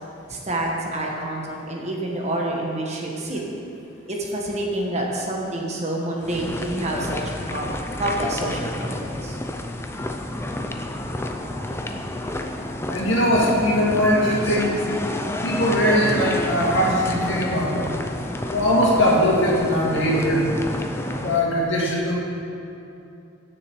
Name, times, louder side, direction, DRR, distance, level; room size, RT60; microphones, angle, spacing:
voice 1, 0.3-3.4 4.1-7.7 8.0-9.4, right 1 dB, 35° right, -1 dB, 1.4 m, -28 dB
sound 1, 6.2-21.4, left 1 dB, 10° left, 0.5 m, -29 dB
voice 2, 12.9-14.8 15.4-17.8 18.5-20.5 21.1-22.1, equal, 65° left, -4 dB, 2.2 m, -20 dB
16.0 x 6.8 x 4.6 m, 2.7 s
head